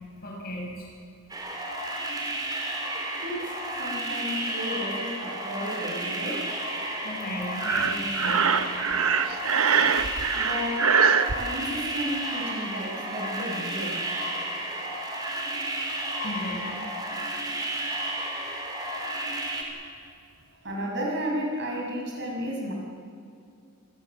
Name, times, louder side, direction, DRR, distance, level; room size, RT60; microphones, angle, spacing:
voice 1, 0.2-0.9 7.0-8.6 10.3-10.4 16.2-16.6, equal, 45° left, -2 dB, 7.8 m, -35 dB
sound 1, 1.3-19.6, right 1 dB, 20° right, 3.6 m, -32 dB
voice 2, 3.1-6.5 10.3-10.9 11.3-14.0 20.6-22.7, equal, 55° right, -1 dB, 6.6 m, -33 dB
Breathing, 7.6-11.4, right 6 dB, 80° right, 1.1 m, -23 dB
27.5 x 20.5 x 7.3 m, 2.5 s
head